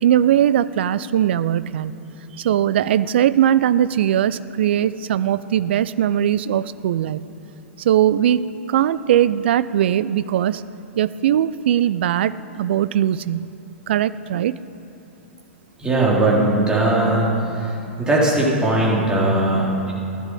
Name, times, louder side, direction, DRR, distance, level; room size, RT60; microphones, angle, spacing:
voice 1, 0.0-1.9 2.4-7.2 7.8-10.6 11.0-13.5 13.9-14.6, right 10 dB, 55° right, 16 dB, 0.5 m, -20 dB
voice 2, 15.8-17.3 18.0-19.9, right 2 dB, 10° right, -4 dB, 3.7 m, -18 dB
15.0 x 11.0 x 7.7 m, 2.8 s
figure-of-eight pair, 105°, 7 cm